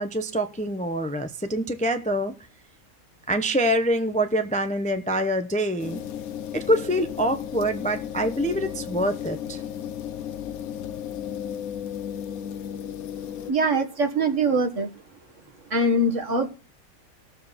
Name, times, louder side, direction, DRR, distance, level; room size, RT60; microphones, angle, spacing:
voice 1, 0.0-2.4 3.3-6.0 6.5-9.6, equal, 5° left, 0.7 m, -25 dB
sound 1, 5.8-13.5, left 9 dB, 80° left, 1.2 m, -34 dB
voice 2, 13.5-14.9 15.7-16.5, right 2 dB, 60° right, 2.1 m, -23 dB
19.0 x 7.4 x 4.2 m
omnidirectional pair, 1.5 m